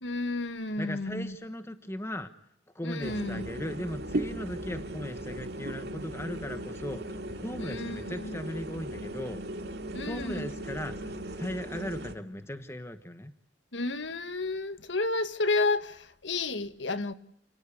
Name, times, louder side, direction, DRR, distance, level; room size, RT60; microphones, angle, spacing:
voice 1, 0.0-1.4 2.8-3.5 7.6-8.4 9.9-10.5 13.7-17.1, left 3 dB, 85° left, 1.8 m, -31 dB
voice 2, 0.8-2.3 2.7-9.4 10.0-13.3, left 1 dB, 15° left, 1.2 m, -38 dB
sound 1, 3.0-12.1, right 1 dB, 60° right, 2.4 m, -37 dB
29.5 x 18.5 x 8.4 m
head